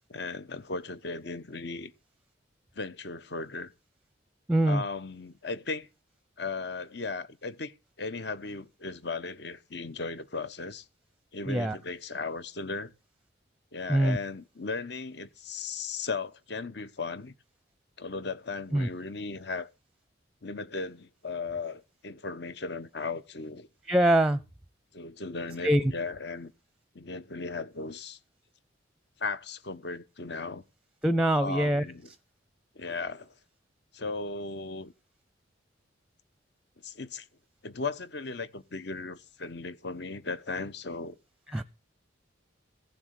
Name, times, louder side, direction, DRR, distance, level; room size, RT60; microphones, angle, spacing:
voice 1, 0.1-1.9 2.7-3.7 4.7-5.9 6.4-7.7 8.0-10.8 11.3-12.9 13.7-17.3 18.0-19.7 20.4-23.7 24.9-26.5 26.9-28.2 29.2-30.6 31.4-32.1 32.7-33.3 33.9-34.9 36.8-37.3 37.6-41.2, left 4 dB, 60° left, 1.1 m, -36 dB
voice 2, 4.5-4.8 11.5-11.8 13.9-14.2 18.7-18.9 23.9-24.4 25.6-25.9 31.0-31.9 41.5-41.6, right 1 dB, 5° right, 0.6 m, -23 dB
15.5 x 7.2 x 8.0 m
head